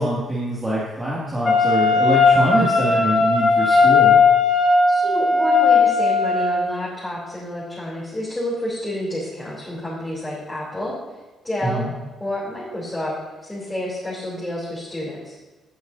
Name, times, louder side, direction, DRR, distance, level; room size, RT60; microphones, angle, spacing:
voice 1, 0.0-4.2 11.6-11.9, right 1 dB, 15° right, -8 dB, 2.4 m, -24 dB
Wind instrument woodwind instrument, 1.4-6.7, left 4 dB, 50° left, 1.6 m, -17 dB
voice 2, 4.9-11.0 11.4-11.8 12.2-13.1 13.4-15.4, left 1 dB, 10° left, -8 dB, 3.5 m, -29 dB
16.5 x 8.1 x 2.8 m, 1.2 s
cardioid pair, 90°, 0 cm